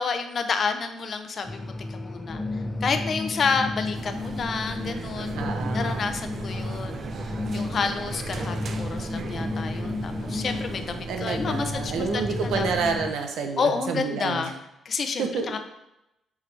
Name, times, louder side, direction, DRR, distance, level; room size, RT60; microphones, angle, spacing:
voice 1, 0.0-2.4 2.8-5.4 5.7-7.0 7.5-12.7 13.6-14.5 14.9-15.6, left 5 dB, 50° left, 7 dB, 0.7 m, -29 dB
sound 1, 1.4-13.1, left 2 dB, 15° left, 0.5 m, -32 dB
sound 2, 3.9-13.1, right 6 dB, 55° right, 0.5 m, -38 dB
voice 2, 5.4-6.1 11.1-14.5 15.2-15.6, right 5 dB, 80° right, 5 dB, 0.8 m, -29 dB
6.6 x 4.8 x 3.3 m, 0.87 s
cardioid pair, 90°, 0 cm